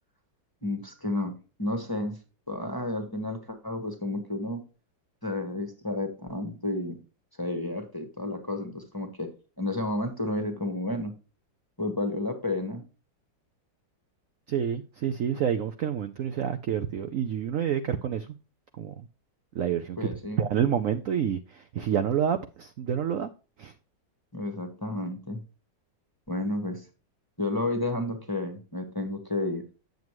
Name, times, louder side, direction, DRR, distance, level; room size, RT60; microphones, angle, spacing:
voice 1, 0.6-2.2 2.5-4.6 5.2-7.0 7.4-11.1 11.8-12.8 20.0-20.4 24.3-25.4 26.3-26.8 27.4-29.6, left 1 dB, 15° left, 1.1 m, -31 dB
voice 2, 14.5-18.3 18.8-19.0 19.5-20.1 20.4-23.3 23.6-23.7, right 8 dB, 65° right, 0.8 m, -28 dB
9.2 x 7.4 x 3.0 m
omnidirectional pair, 2.0 m